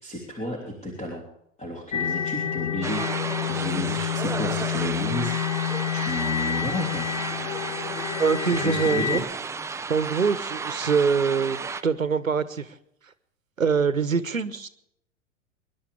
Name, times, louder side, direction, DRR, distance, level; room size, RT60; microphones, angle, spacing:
voice 1, 0.0-1.2 1.6-7.0 8.4-9.2, left 1 dB, 15° left, 0 dB, 3.3 m, -33 dB
sound 1, 1.9-9.2, left 10 dB, 65° left, 1.6 m, -28 dB
sound 2, 2.8-11.8, right 5 dB, 5° right, 0.5 m, -33 dB
voice 2, 8.2-9.3 9.9-12.7 13.6-14.7, right 5 dB, 85° right, 14 dB, 1.2 m, -24 dB
26.0 x 11.5 x 3.5 m, 0.77 s
figure-of-eight pair, 90°, 39 cm